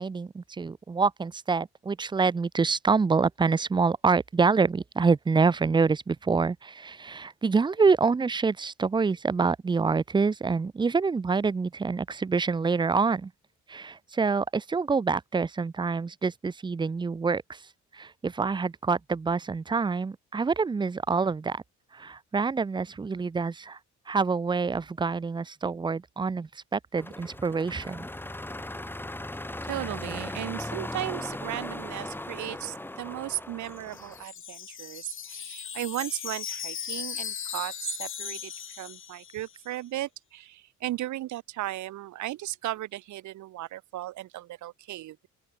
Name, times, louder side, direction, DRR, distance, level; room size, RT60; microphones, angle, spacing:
voice 1, 0.0-13.3 13.7-17.6 17.9-21.6 21.9-23.8 24.1-28.0, right 4 dB, 15° right, 0.4 m, -26 dB
sound 1, 27.0-34.2, left 1 dB, 5° left, 1.5 m, -38 dB
voice 2, 29.6-38.5 38.8-45.2, right 15 dB, 75° right, 0.9 m, -36 dB
Wind chime, 33.6-39.6, left 8 dB, 40° left, 0.9 m, -38 dB
open air
cardioid pair, 90°, 30 cm